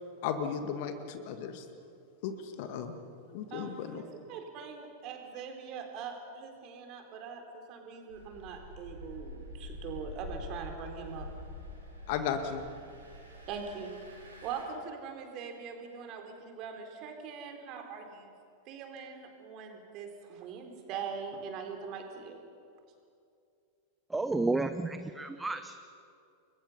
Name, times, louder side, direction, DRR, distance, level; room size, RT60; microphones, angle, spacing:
voice 1, 0.2-1.7 2.2-2.9 3.3-4.0 12.1-12.6, left 7 dB, 50° left, 8 dB, 2.0 m, -35 dB
voice 2, 3.5-4.0 4.3-11.3 13.5-13.9 14.4-18.3 18.7-22.4, right 6 dB, 40° right, 4 dB, 3.8 m, -42 dB
Engine, 8.1-14.6, left 1 dB, 80° right, 6.6 m, -46 dB
voice 3, 24.1-25.7, right 3 dB, 10° right, 10 dB, 0.8 m, -31 dB
30.0 x 22.5 x 5.6 m, 2.5 s
figure-of-eight pair, 90°, 0 cm